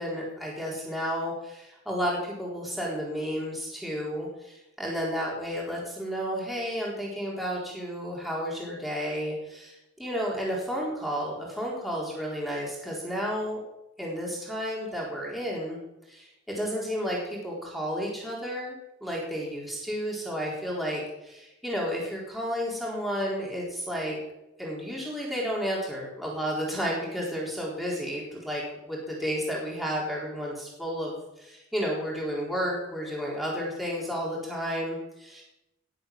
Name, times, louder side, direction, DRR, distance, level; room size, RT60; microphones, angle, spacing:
voice 1, 0.0-13.6 14.0-15.8 16.1-16.3 16.5-24.2 24.6-35.4, equal, ahead, -5 dB, 4.2 m, -32 dB
20.0 x 8.0 x 7.7 m, 0.91 s
head